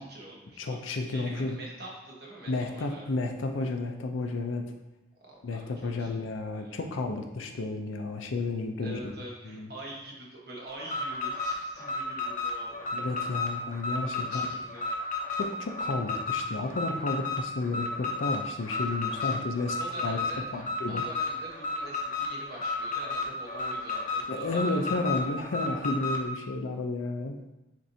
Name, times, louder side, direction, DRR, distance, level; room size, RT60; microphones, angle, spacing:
voice 1, 0.0-3.1 5.2-6.8 8.8-12.9 14.1-14.9 18.7-25.3, right 1 dB, 55° right, -3 dB, 1.0 m, -45 dB
voice 2, 0.6-1.6 2.5-4.7 5.4-9.0 9.4-9.7 12.9-14.5 15.4-20.2 20.5-21.0 24.3-27.4, left 3 dB, 90° left, 4 dB, 0.5 m, -32 dB
Alarm, 10.8-26.3, left 3 dB, 40° left, 0.6 m, -32 dB
7.3 x 2.6 x 2.7 m, 0.99 s
head